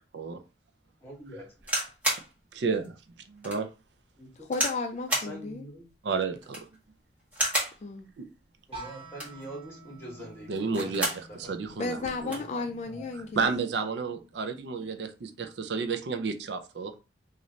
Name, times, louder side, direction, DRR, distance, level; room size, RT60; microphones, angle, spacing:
voice 1, 1.0-1.4 4.2-4.3 5.1-5.9 8.7-11.0 11.3-11.5 12.2-13.1, equal, 15° left, 1.5 m, -44 dB
sound 1, 1.6-2.3 2.8-2.9 3.4-3.6 4.5-4.8 5.1-5.3 6.4-6.8 7.3-7.8 9.0-9.4 10.6-11.3 11.7-11.8 12.0-12.5 13.3-13.6, equal, 10° right, 1.4 m, -30 dB
voice 2, 2.5-2.9 3.3-3.7 6.0-6.6 8.2-8.3 10.5-11.1 11.3-12.3 13.4-16.9, right 4 dB, 70° right, 0.5 m, -31 dB
voice 3, 4.4-5.7 7.8-8.1 11.8-13.5, left 3 dB, 40° left, 0.3 m, -34 dB
sound 2, 8.7-14.5, right 2 dB, 35° right, 1.0 m, -49 dB
3.1 x 2.5 x 3.9 m
head